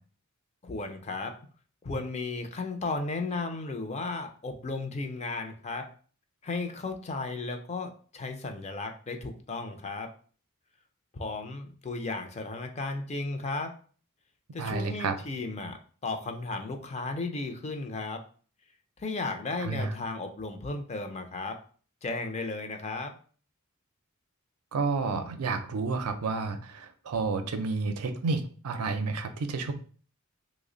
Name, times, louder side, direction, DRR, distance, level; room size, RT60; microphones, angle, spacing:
voice 1, 0.6-1.4 1.8-5.8 6.4-10.1 11.1-13.7 14.5-18.2 19.0-21.6 22.0-23.1, left 3 dB, 30° left, 5 dB, 0.4 m, -34 dB
voice 2, 14.6-15.2 19.6-20.0 24.7-29.7, right 4 dB, 85° right, 8 dB, 0.5 m, -30 dB
3.1 x 2.0 x 3.7 m, 0.43 s
head